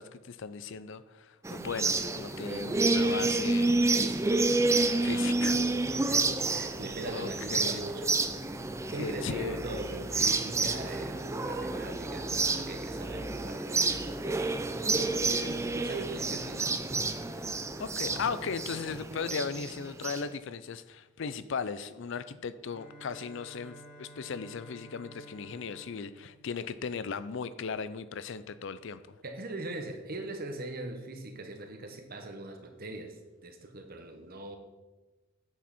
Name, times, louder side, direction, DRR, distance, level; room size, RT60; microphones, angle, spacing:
voice 1, 0.0-3.8 5.0-5.6 7.1-7.8 9.0-9.6 17.8-29.2, left 5 dB, 65° left, 14 dB, 0.5 m, -37 dB
sound 1, 1.4-20.2, right 3 dB, 15° right, 0.5 m, -29 dB
voice 2, 4.0-4.5 5.9-8.1 8.5-16.6 29.2-34.6, right 2 dB, 50° right, 5 dB, 1.2 m, -41 dB
Bowed string instrument, 22.7-27.5, equal, 25° left, 1.9 m, -52 dB
8.9 x 7.6 x 4.3 m, 1.1 s
head